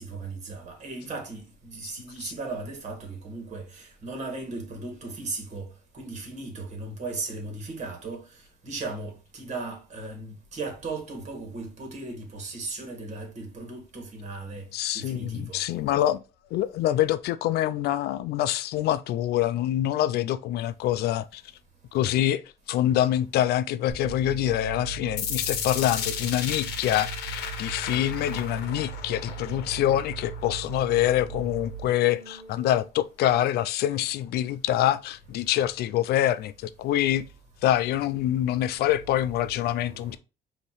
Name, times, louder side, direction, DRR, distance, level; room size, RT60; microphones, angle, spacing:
voice 1, 0.0-14.7 14.9-15.6 39.5-40.2, right 3 dB, 45° right, 1.8 m, -37 dB
voice 2, 14.7-16.2 16.5-21.4 21.9-22.4 22.7-37.3 37.6-40.2, left 12 dB, 70° left, 0.4 m, -25 dB
sound 1, 23.9-32.9, right 6 dB, 60° right, 1.1 m, -39 dB
sound 2, 25.2-31.2, left 8 dB, 90° left, 0.8 m, -35 dB
5.2 x 2.9 x 3.1 m
cardioid pair, 110°, 17 cm